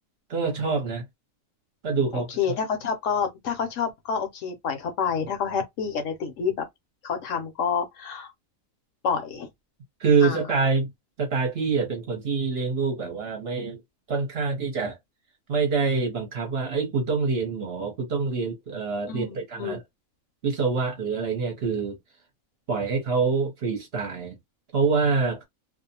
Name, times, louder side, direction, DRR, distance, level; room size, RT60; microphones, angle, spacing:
voice 1, 0.3-1.0 1.8-2.3 10.0-10.9 11.2-13.8 14.1-15.0 15.5-19.8 20.4-22.0 22.7-24.3 24.7-25.4, right 4 dB, 55° right, 0.9 m, -25 dB
voice 2, 2.1-6.7 7.0-8.3 9.0-9.5 10.2-10.4 19.1-19.8, left 6 dB, 70° left, 1.0 m, -28 dB
2.5 x 2.0 x 2.7 m
omnidirectional pair, 1.4 m